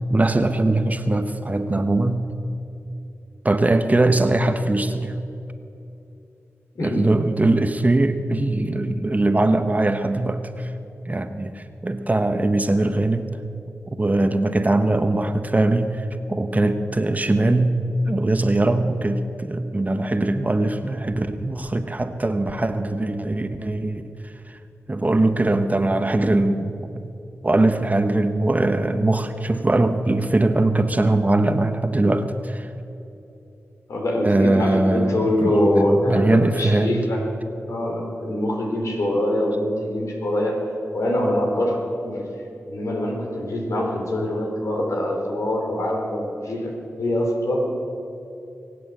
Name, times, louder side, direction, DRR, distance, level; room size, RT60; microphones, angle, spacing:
voice 1, 0.1-2.3 3.4-5.2 6.8-10.7 11.1-13.4 14.0-24.0 24.5-24.6 24.9-26.7 27.0-27.1 27.4-32.7 34.2-36.9, right 2 dB, 30° right, 8 dB, 1.1 m, -21 dB
voice 2, 6.7-7.1 33.9-37.2 37.7-40.7 40.9-42.3 42.7-47.7, left 1 dB, 75° left, 0 dB, 3.4 m, -24 dB
21.0 x 8.4 x 8.1 m, 2.8 s
cardioid pair, 50°, 5 cm